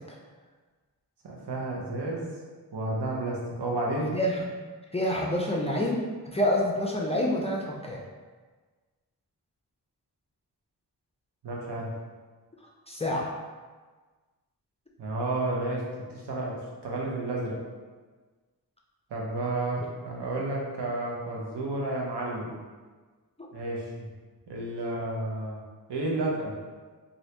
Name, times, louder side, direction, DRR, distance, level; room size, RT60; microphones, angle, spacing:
voice 1, 1.2-2.3 2.7-4.1 11.4-11.9 15.0-15.9 16.3-16.5 16.8-17.6 19.1-22.5 23.5-24.1 24.5-25.6 25.9-26.6, right 2 dB, 85° right, -3 dB, 0.8 m, -31 dB
voice 2, 4.1-4.4 4.9-8.0 12.9-13.3 23.4-23.5, left 1 dB, 15° left, -3 dB, 0.3 m, -27 dB
2.8 x 2.6 x 3.2 m, 1.4 s
wide cardioid pair, 115°, 40 cm